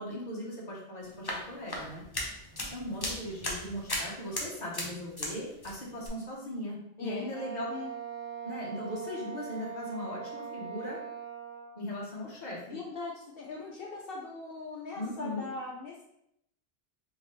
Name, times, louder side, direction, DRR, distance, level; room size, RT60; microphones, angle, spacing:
voice 1, 0.0-2.0 2.7-7.7 8.4-11.0 11.8-12.6 15.0-15.4, left 1 dB, 45° left, -4 dB, 1.1 m, -38 dB
sound 1, 1.0-5.4 5.6-6.1, left 1 dB, 30° left, 0.6 m, -37 dB
voice 2, 7.0-7.3 7.7-7.9 12.7-16.0, left 3 dB, 65° left, -2 dB, 0.8 m, -40 dB
Wind instrument woodwind instrument, 7.3-11.8, right 7 dB, 45° right, 0.6 m, -41 dB
3.5 x 2.8 x 3.2 m, 0.76 s
omnidirectional pair, 1.1 m